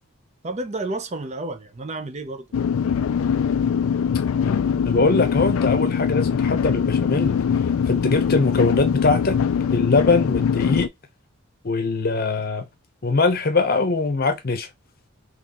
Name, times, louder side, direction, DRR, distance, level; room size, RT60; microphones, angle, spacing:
voice 1, 0.4-2.5 4.9-5.0, right 2 dB, 30° right, 0.5 m, -31 dB
sound 1, 2.5-10.9, left 7 dB, 75° left, 0.3 m, -22 dB
voice 2, 4.9-7.3 7.9-9.4 9.7-10.9 11.6-12.7 13.0-14.7, left 3 dB, 45° left, 0.7 m, -22 dB
3.9 x 3.0 x 2.9 m
head